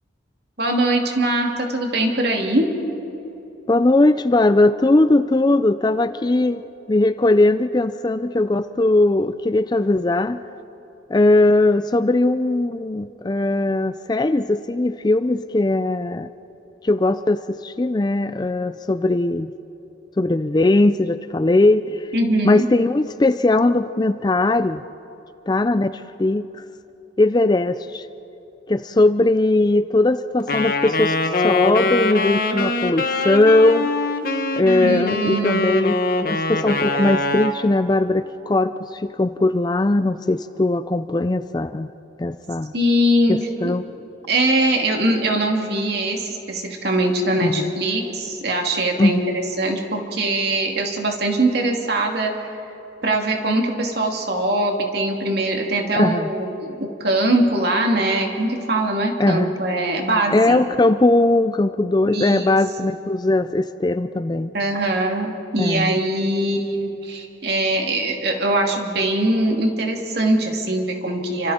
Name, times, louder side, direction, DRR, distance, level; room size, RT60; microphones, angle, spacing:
voice 1, 0.6-2.7 22.1-22.7 34.8-35.9 42.7-43.4 43.6-43.7 44.3-52.3 53.0-60.6 62.0-62.5 64.5-71.5, right 1 dB, 55° right, 1 dB, 2.7 m, -22 dB
voice 2, 3.7-6.6 6.9-10.4 11.1-16.3 16.8-19.5 20.2-22.1 22.4-24.8 25.5-26.6 27.2-28.1 28.7-33.9 34.6-41.9 42.2-42.7 43.3-43.8 47.4-47.7 49.0-49.3 55.9-56.3 59.2-59.6 60.3-64.5 65.6-66.0, left 2 dB, 20° left, 12 dB, 0.4 m, -19 dB
Wind instrument woodwind instrument, 30.5-37.6, left 2 dB, 50° left, 1.3 m, -22 dB
29.5 x 25.0 x 4.3 m, 2.9 s
head